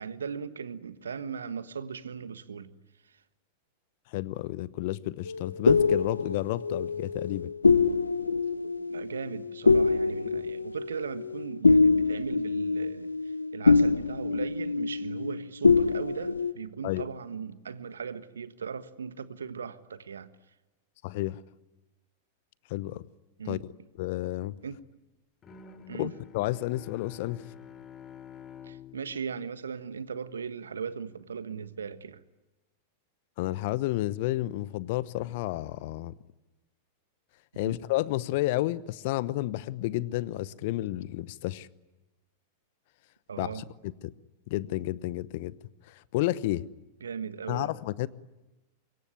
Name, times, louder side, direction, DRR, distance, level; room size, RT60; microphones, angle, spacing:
voice 1, 0.0-2.7 8.2-13.1 13.5-20.3 23.4-23.6 24.6-24.8 25.9-26.1 28.6-32.2 37.5-37.8 43.3-43.6 47.0-47.7, right 6 dB, 75° right, 1.5 m, -38 dB
voice 2, 4.1-7.5 16.8-17.1 21.0-21.4 22.7-23.1 23.5-23.6 24.0-24.6 25.9-27.4 33.4-36.1 37.6-41.7 43.4-43.6 44.0-44.1 44.5-45.6 45.9-46.7 47.5-48.1, left 16 dB, 50° left, 1.0 m, -31 dB
sound 1, 5.3-15.4 15.6-16.5, left 4 dB, 85° left, 0.8 m, -25 dB
Bowed string instrument, 25.4-30.5, left 7 dB, 30° left, 3.4 m, -49 dB
25.5 x 23.0 x 9.7 m
figure-of-eight pair, 95°, 0 cm